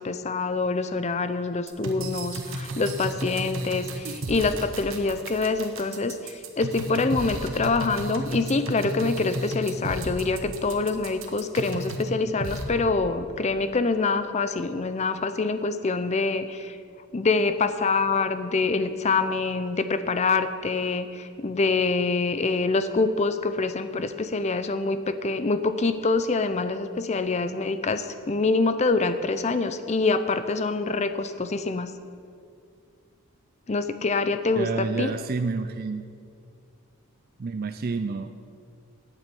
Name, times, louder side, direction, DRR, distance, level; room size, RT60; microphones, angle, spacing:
voice 1, 0.0-16.8 17.1-31.9 33.7-35.1, left 3 dB, 30° left, 11 dB, 0.5 m, -25 dB
sound 1, 1.7-12.1 12.4-12.6, right 2 dB, 65° right, 1.2 m, -33 dB
voice 2, 34.6-36.0 37.4-38.3, right 4 dB, 45° right, 9 dB, 0.4 m, -29 dB
9.1 x 8.7 x 7.6 m, 2.3 s
head